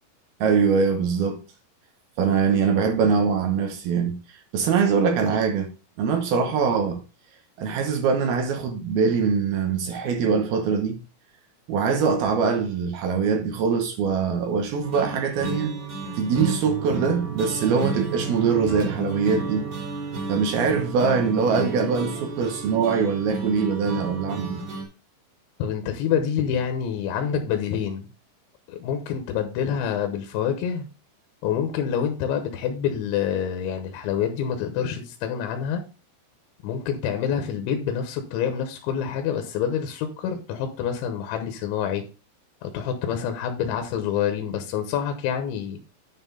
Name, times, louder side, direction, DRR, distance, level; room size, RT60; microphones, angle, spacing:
voice 1, 0.4-1.4 2.2-5.7 6.0-7.0 7.6-11.0 11.7-15.8 16.1-19.7 20.3-24.6, right 5 dB, 75° right, 2.3 m, -23 dB
sound 1, 14.8-24.8, right 4 dB, 40° right, 2.3 m, -32 dB
voice 2, 25.6-28.1 28.7-30.8 31.4-35.8 36.6-42.0 42.6-45.8, left 8 dB, 75° left, 3.2 m, -27 dB
9.8 x 4.5 x 5.4 m
omnidirectional pair, 5.8 m